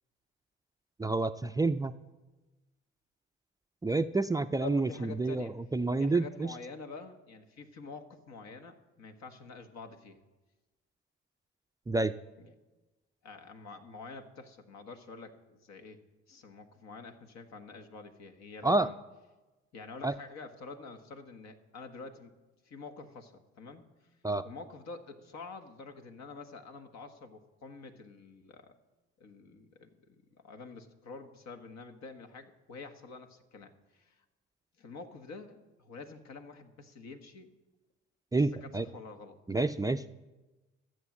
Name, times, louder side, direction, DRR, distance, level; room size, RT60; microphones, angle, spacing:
voice 1, 1.0-1.9 3.8-4.9 5.2-6.5 11.9-12.1 18.6-18.9 20.0-20.1 24.2-24.4 38.3-38.9 39.5-40.1, right 3 dB, 10° right, 10 dB, 0.4 m, -28 dB
voice 2, 4.6-5.6 6.0-10.2 12.4-12.5 13.2-16.0 16.3-19.0 19.7-22.3 22.6-23.8 24.4-28.7 29.2-34.1 34.8-37.5 38.3-39.4, left 4 dB, 60° left, 7 dB, 1.5 m, -47 dB
13.5 x 7.8 x 7.3 m, 1.1 s
hypercardioid pair, 60°, 30 cm